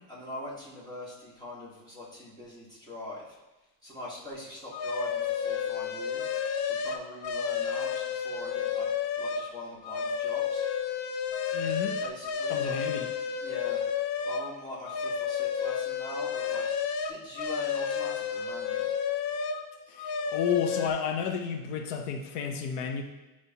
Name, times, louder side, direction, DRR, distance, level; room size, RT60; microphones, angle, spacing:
voice 1, 0.1-3.4 3.8-6.3 6.6-8.9 9.2-10.6 12.0-12.8 13.4-13.8 14.2-18.9, left 1 dB, 10° left, -6 dB, 1.4 m, -42 dB
sound 1, 4.7-9.5 9.8-14.5 14.8-19.6 20.0-20.9, left 7 dB, 45° left, 0.5 m, -31 dB
voice 2, 11.5-12.0 12.5-13.0 19.9-23.0, left 7 dB, 85° left, 4 dB, 1.0 m, -31 dB
9.6 x 4.9 x 2.9 m, 1.1 s
cardioid pair, 165°, 44 cm